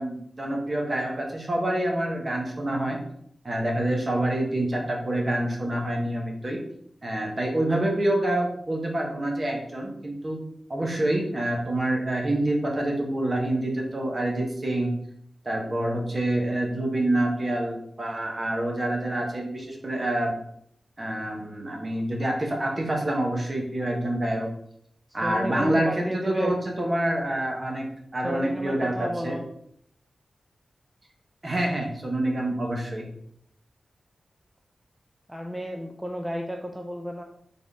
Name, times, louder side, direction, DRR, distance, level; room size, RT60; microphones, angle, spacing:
voice 1, 0.0-3.0 3.4-6.6 7.0-10.4 10.7-14.9 15.4-20.3 21.0-24.5 25.1-27.9 28.1-29.4 31.4-33.1, right 1 dB, 35° right, 1 dB, 1.1 m, -27 dB
voice 2, 25.2-26.5 28.2-29.4 35.3-37.2, equal, 5° right, 2 dB, 0.4 m, -32 dB
4.0 x 3.6 x 3.5 m, 0.68 s
wide cardioid pair, 90°, 0 cm